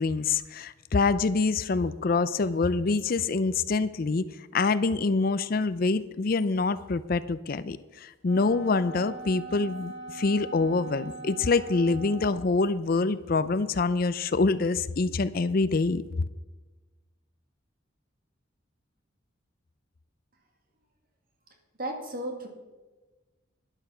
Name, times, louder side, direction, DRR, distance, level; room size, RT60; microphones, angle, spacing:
voice 1, 0.0-4.2 4.5-16.0, left 3 dB, 50° left, 15 dB, 0.5 m, -26 dB
Wind instrument woodwind instrument, 8.2-12.5, right 2 dB, 80° right, 3.8 m, -42 dB
voice 2, 21.8-22.5, right 1 dB, 45° right, 3 dB, 2.2 m, -34 dB
12.0 x 11.0 x 5.7 m, 1.2 s
head